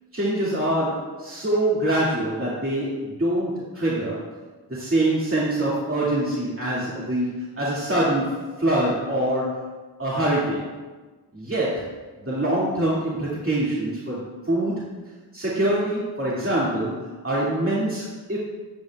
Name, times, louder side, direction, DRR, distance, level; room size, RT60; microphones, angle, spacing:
voice 1, 0.1-4.2 4.7-9.7 10.0-10.7 11.3-11.9 12.2-14.8 15.3-17.0 17.2-18.4, right 1 dB, 30° right, -7 dB, 2.1 m, -24 dB
13.5 x 8.6 x 2.3 m, 1.3 s
wide cardioid pair, 45°, 41 cm